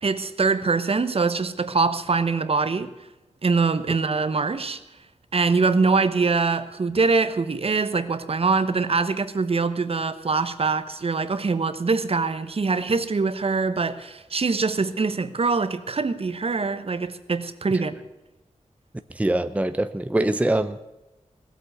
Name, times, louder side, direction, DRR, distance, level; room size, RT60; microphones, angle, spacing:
voice 1, 0.0-2.9 3.4-4.8 5.3-17.9, right 4 dB, 55° right, 1.1 m, -23 dB
voice 2, 19.1-20.8, right 1 dB, 10° right, 0.6 m, -23 dB
17.5 x 8.2 x 9.1 m
wide cardioid pair, 95°, 12 cm